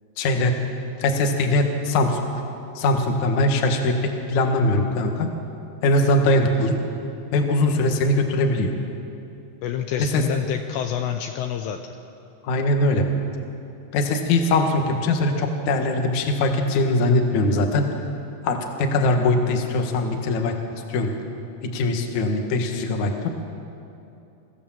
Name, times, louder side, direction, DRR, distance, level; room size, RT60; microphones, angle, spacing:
voice 1, 0.2-0.6 1.0-2.2 2.8-5.3 5.8-6.8 7.3-8.7 10.1-10.2 12.4-13.1 13.9-17.9 18.4-20.6 20.9-21.1 21.7-23.3, left 2 dB, 60° left, 4 dB, 2.1 m, -21 dB
voice 2, 9.6-11.8, left 9 dB, 80° left, 5 dB, 2.7 m, -27 dB
25.0 x 15.5 x 7.4 m, 2.7 s
omnidirectional pair, 5.6 m